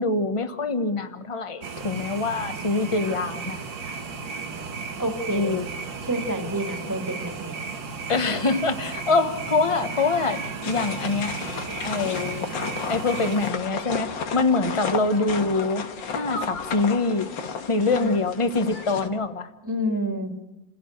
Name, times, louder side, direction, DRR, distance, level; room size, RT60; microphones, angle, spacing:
voice 1, 0.0-3.6 5.3-5.7 8.1-10.4 10.6-11.3 11.8-12.5 12.9-17.3 17.7-19.5, left 3 dB, 20° left, 8 dB, 1.0 m, -24 dB
sound 1, 1.6-13.5, right 5 dB, 85° right, 2.2 m, -34 dB
voice 2, 5.0-5.6 6.1-7.5 17.9-18.2 19.6-20.3, right 1 dB, 10° right, 4 dB, 2.1 m, -28 dB
sound 2, 10.6-19.1, left 6 dB, 90° left, 2.1 m, -33 dB
29.0 x 16.0 x 6.6 m, 1.0 s
omnidirectional pair, 2.0 m